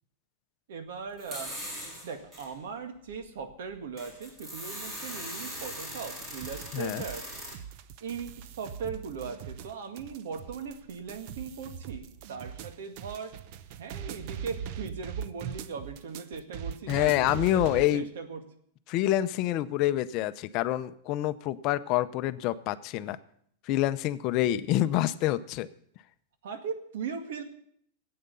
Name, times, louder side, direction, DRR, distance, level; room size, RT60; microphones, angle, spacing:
voice 1, 0.7-1.5 2.0-7.3 8.0-13.3 13.8-18.4 26.4-27.4, right 5 dB, 75° right, 7 dB, 1.9 m, -39 dB
sound 1, 1.2-2.5 3.1-3.2 3.7-7.6, equal, 25° right, 4.0 m, -40 dB
sound 2, 6.4-17.9, right 8 dB, 50° right, 0.7 m, -41 dB
voice 2, 6.7-7.0 16.9-18.1 18.9-23.2 23.7-25.7, left 14 dB, 40° left, 13 dB, 0.6 m, -27 dB
14.5 x 8.7 x 6.9 m, 0.66 s
supercardioid pair, 150°, 0 cm